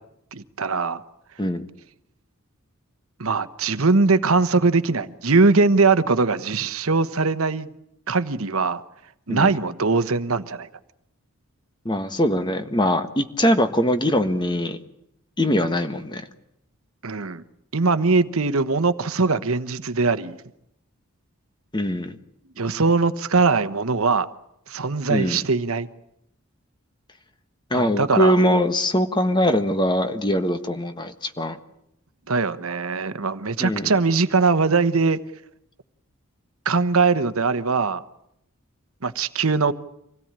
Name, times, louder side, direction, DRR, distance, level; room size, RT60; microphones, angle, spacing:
voice 1, 0.3-1.0 3.2-7.7 8.1-8.8 9.3-10.7 17.0-17.4 17.7-20.4 22.6-24.3 24.7-25.9 27.7-28.4 32.3-35.2 36.6-38.0 39.0-39.7, right 4 dB, 75° right, 1.1 m, -21 dB
voice 2, 11.8-14.8 15.4-16.2 21.7-22.2 25.1-25.4 27.7-31.6 33.6-33.9, equal, 20° left, 1.4 m, -22 dB
26.0 x 17.5 x 8.9 m
head